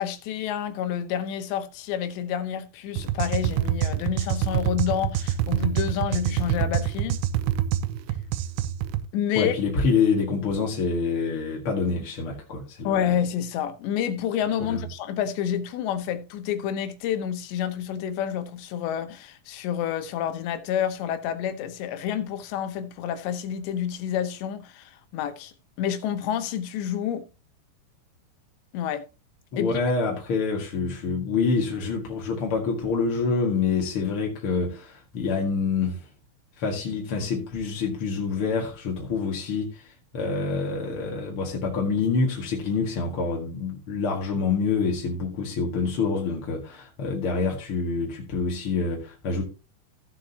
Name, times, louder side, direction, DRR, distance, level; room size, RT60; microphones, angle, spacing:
voice 1, 0.0-7.2 9.1-9.5 12.8-25.5 25.8-27.3 28.7-29.0 29.6-29.7, left 9 dB, 80° left, 3.2 m, -29 dB
sound 1, 3.0-9.1, right 11 dB, 80° right, 2.6 m, -26 dB
voice 2, 9.4-13.1 14.6-14.9 29.5-36.1 36.6-49.4, left 4 dB, 45° left, 1.8 m, -26 dB
15.5 x 7.5 x 2.9 m
omnidirectional pair, 5.2 m